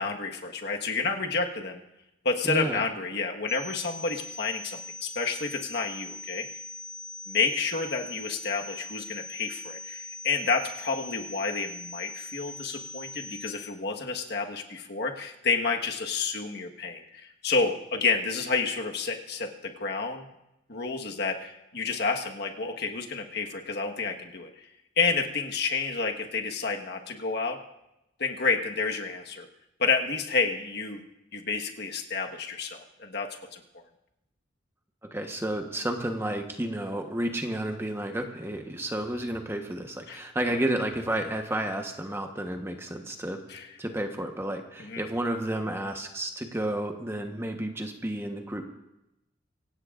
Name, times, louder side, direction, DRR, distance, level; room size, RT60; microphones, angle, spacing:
voice 1, 0.0-1.8 2.2-6.4 7.3-20.3 20.7-24.5 25.0-27.6 28.2-29.5 29.8-31.0 31.3-33.8 40.1-40.2 40.5-40.6 43.5-43.7 44.8-45.0, left 4 dB, 55° left, 3 dB, 1.4 m, -30 dB
voice 2, 2.4-2.8 35.1-43.4 43.8-48.6, right 1 dB, 15° right, 4 dB, 1.1 m, -31 dB
sound 1, 3.5-13.5, left 2 dB, 35° right, 6.5 m, -41 dB
24.5 x 17.0 x 2.5 m, 0.89 s
head